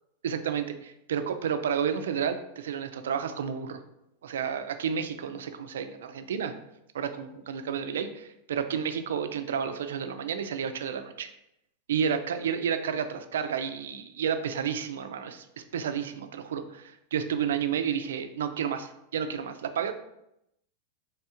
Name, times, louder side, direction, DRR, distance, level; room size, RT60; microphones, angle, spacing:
voice 1, 0.2-3.8 4.2-6.5 6.9-11.3 11.9-19.9, right 7 dB, 90° right, 9 dB, 0.4 m, -31 dB
3.5 x 3.2 x 2.9 m, 0.82 s
supercardioid pair, 140°, 0 cm